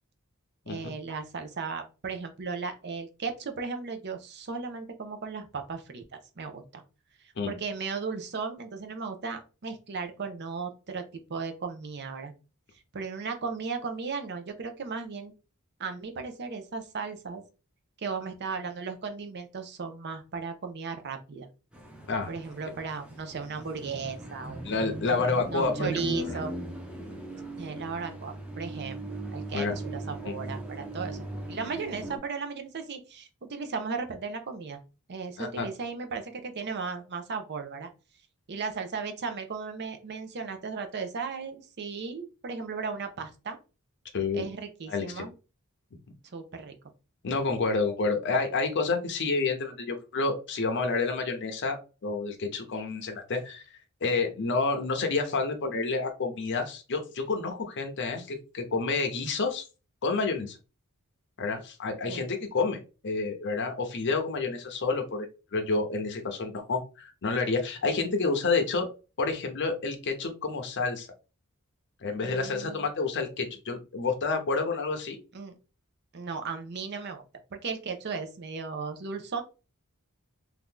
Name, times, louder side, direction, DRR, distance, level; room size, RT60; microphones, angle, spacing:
voice 1, 0.7-6.8 7.4-12.3 12.9-15.3 15.8-17.4 18.0-21.5 22.3-24.6 25.5-26.6 27.6-34.8 35.1-37.9 38.5-43.6 44.3-45.3 46.3-46.7 62.1-62.2 72.2-72.9 75.3-75.6 76.1-77.2 77.5-79.4, right 5 dB, 50° right, 7 dB, 0.6 m, -36 dB
sound 1, 21.7-32.2, right 1 dB, 5° right, 0.7 m, -38 dB
voice 2, 24.6-25.9 26.2-26.3 29.5-29.7 35.4-35.7 44.1-44.4 44.9-45.3 47.2-53.6 54.0-59.6 60.0-60.6 61.4-68.9 69.2-71.1 72.0-75.2, left 4 dB, 55° left, 4 dB, 0.6 m, -29 dB
2.9 x 2.4 x 3.6 m, 0.32 s
head